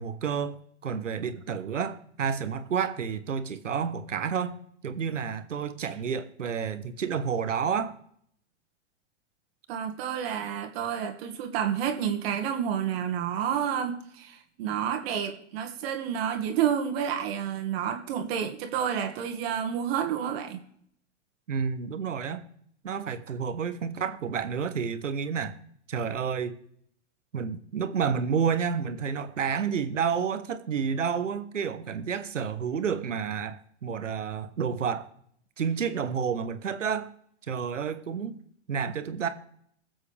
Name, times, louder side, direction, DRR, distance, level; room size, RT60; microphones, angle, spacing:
voice 1, 0.0-4.5 4.8-7.9 21.5-22.4 22.8-25.5 25.9-26.6 27.3-35.1 35.6-37.1 37.5-38.3 38.7-39.3, right 6 dB, 90° right, 11 dB, 1.2 m, -30 dB
voice 2, 9.7-20.6, right 8 dB, 55° right, 5 dB, 1.9 m, -30 dB
22.0 x 7.8 x 3.5 m, 0.67 s
hypercardioid pair, 110°, 36 cm